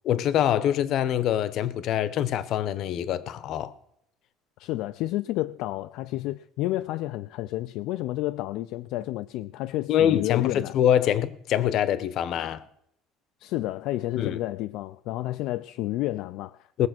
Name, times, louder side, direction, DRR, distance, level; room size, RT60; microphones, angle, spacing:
voice 1, 0.0-3.8 9.9-12.7 14.2-14.4 16.8-16.9, left 10 dB, 50° left, 0.8 m, -24 dB
voice 2, 4.6-10.8 13.4-16.9, left 16 dB, 65° left, 0.4 m, -30 dB
19.0 x 7.4 x 6.0 m
cardioid pair, 150°, 0 cm